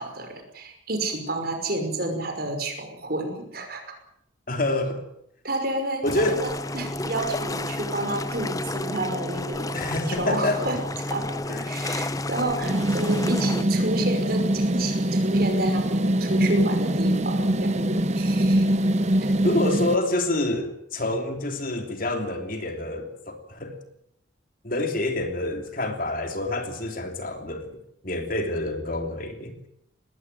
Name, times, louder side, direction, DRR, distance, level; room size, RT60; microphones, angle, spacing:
voice 1, 0.0-4.0 5.4-18.7, right 2 dB, 50° right, 5 dB, 5.5 m, -30 dB
voice 2, 4.5-5.0 6.0-6.4 9.7-10.7 11.5-11.7 19.4-23.8 24.6-29.6, left 2 dB, 45° left, 5 dB, 3.2 m, -27 dB
sound 1, 6.1-13.6, left 2 dB, 20° left, 0.8 m, -31 dB
sound 2, 12.6-20.0, right 1 dB, 35° right, 0.9 m, -23 dB
20.0 x 17.5 x 9.3 m, 0.75 s
head